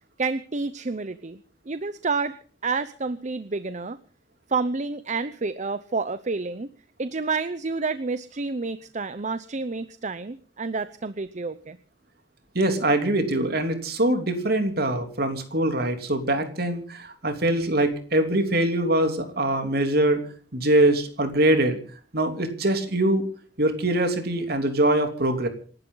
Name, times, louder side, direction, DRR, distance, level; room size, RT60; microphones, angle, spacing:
voice 1, 0.2-1.4 1.7-2.4 2.6-4.0 4.5-6.7 7.0-11.8, right 4 dB, 40° right, 13 dB, 0.7 m, -29 dB
voice 2, 12.5-20.2 20.5-21.8 22.1-23.2 23.6-25.5, right 1 dB, 60° right, 6 dB, 3.2 m, -23 dB
27.5 x 12.0 x 4.0 m, 0.43 s
head